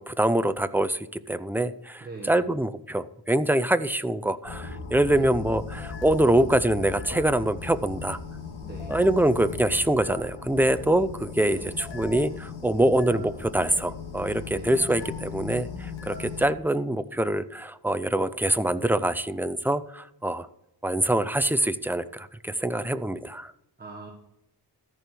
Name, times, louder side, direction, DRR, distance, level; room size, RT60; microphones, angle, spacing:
voice 1, 0.0-8.2 8.9-20.5 20.8-23.5, right 1 dB, 5° right, 13 dB, 0.5 m, -25 dB
voice 2, 2.0-2.4 5.1-5.3 8.6-9.0 11.5-11.8 14.4-14.7 23.8-24.1, right 3 dB, 20° right, 0 dB, 1.4 m, -41 dB
sound 1, 4.4-16.5, left 4 dB, 85° left, 2.0 m, -38 dB
14.0 x 4.7 x 6.8 m, 0.84 s
wide cardioid pair, 105°, 44 cm